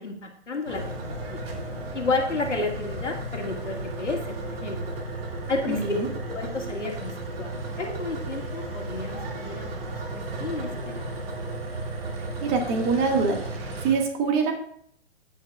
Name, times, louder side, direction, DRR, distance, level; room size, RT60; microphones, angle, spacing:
voice 1, 0.0-1.4 1.9-4.9 5.5-6.0 6.3-9.7 10.1-11.0, left 3 dB, 80° left, 2 dB, 2.1 m, -31 dB
sound 1, 0.7-13.9, right 2 dB, 55° right, 2.3 m, -34 dB
voice 2, 5.7-6.1 12.4-14.5, right 4 dB, 25° right, 3 dB, 1.7 m, -25 dB
13.5 x 8.3 x 2.4 m, 0.65 s
figure-of-eight pair, 120°, 36 cm